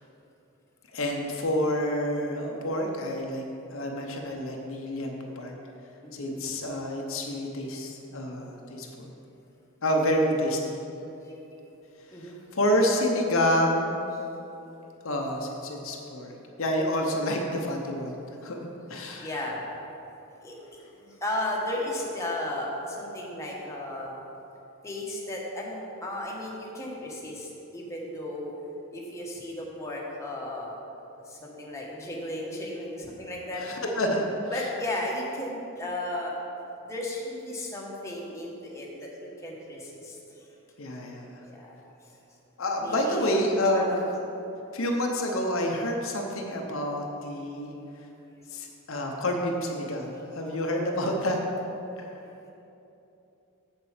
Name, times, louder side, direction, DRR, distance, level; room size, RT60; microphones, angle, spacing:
voice 1, 0.9-3.4 3.7-5.5 6.1-9.1 9.8-10.8 12.1-13.9 15.0-18.1 18.4-19.3 33.6-34.7 40.8-41.4 42.6-44.0 44.7-47.7 48.5-51.4 52.0-52.1, equal, 60° left, 1 dB, 0.8 m, -28 dB
voice 2, 6.0-6.4 11.2-11.3 12.1-12.4 14.1-14.2 19.2-19.6 20.4-20.6 20.9-24.2 24.8-28.5 28.9-30.7 31.2-33.6 34.5-36.4 36.8-40.9 41.4-41.7 42.0-42.2 42.8-43.4 43.7-44.0, left 1 dB, 15° left, -4 dB, 1.1 m, -35 dB
7.5 x 7.0 x 5.0 m, 2.9 s
head